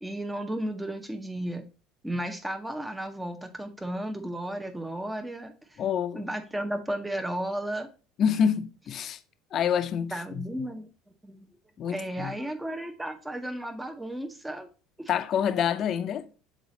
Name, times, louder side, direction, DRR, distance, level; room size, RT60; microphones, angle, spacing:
voice 1, 0.0-1.7 2.0-5.8 6.1-7.9 10.1-10.9 11.2-11.5 11.9-14.7 15.0-15.1, right 1 dB, 10° right, 0.7 m, -34 dB
voice 2, 5.8-6.3 8.2-9.2 9.5-10.7 11.8-12.4 15.1-16.3, left 8 dB, 45° left, 0.5 m, -27 dB
6.3 x 3.9 x 4.0 m
figure-of-eight pair, 65°, 0 cm